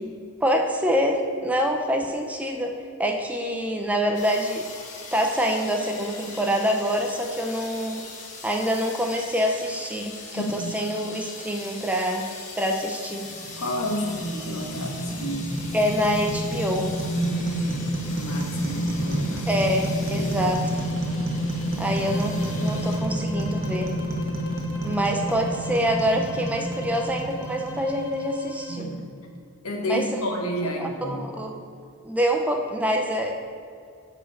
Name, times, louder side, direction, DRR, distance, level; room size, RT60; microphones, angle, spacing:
voice 1, 0.4-4.7 5.1-8.0 8.4-12.3 12.6-13.3 15.7-16.9 19.5-20.8 21.8-22.3 22.6-23.9 24.8-28.9 29.9-30.1 30.8-31.6 32.0-33.4, equal, 5° right, 3 dB, 0.5 m, -26 dB
sound 1, 4.1-23.0, left 4 dB, 35° left, 1.1 m, -41 dB
voice 2, 10.4-10.7 13.6-15.5 17.1-19.5 20.1-20.5 21.7-21.9 28.7-29.1 29.6-31.3, equal, 75° left, 1 dB, 1.2 m, -30 dB
sound 2, 13.2-28.4, equal, 65° right, 1.2 m, -29 dB
sound 3, 22.0-28.8, left 3 dB, 60° left, 0.6 m, -42 dB
6.1 x 4.9 x 6.3 m, 2.3 s
head